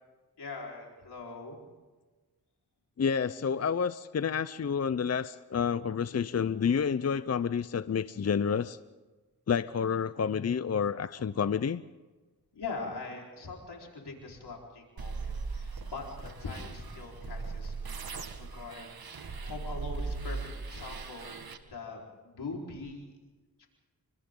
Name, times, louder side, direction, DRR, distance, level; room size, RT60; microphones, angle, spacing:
voice 1, 0.4-1.6 6.6-6.8 11.2-11.5 12.5-18.9 19.2-21.3 21.7-23.1 23.6-23.7, left 3 dB, 85° left, -1 dB, 4.6 m, -42 dB
voice 2, 3.0-8.8 9.5-11.8, left 6 dB, 40° left, 15 dB, 0.6 m, -29 dB
sound 1, 15.0-21.6, right 4 dB, 65° right, 1.8 m, -39 dB
29.0 x 25.0 x 3.8 m, 1.3 s
cardioid pair, 50°, 39 cm